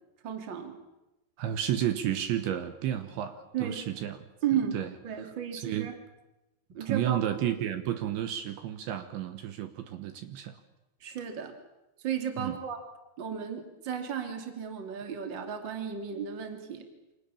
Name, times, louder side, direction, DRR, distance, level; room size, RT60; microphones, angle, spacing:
voice 1, 0.2-0.8 3.5-3.8 4.4-6.0 6.7-7.2 11.0-11.5 12.0-12.8 13.2-16.8, right 8 dB, 30° right, 5 dB, 2.6 m, -34 dB
voice 2, 1.4-4.2 4.7-4.9 5.2-6.0 6.8-10.6 12.4-12.6, right 11 dB, 70° right, 8 dB, 3.3 m, -32 dB
28.5 x 26.0 x 7.1 m, 0.98 s
omnidirectional pair, 5.7 m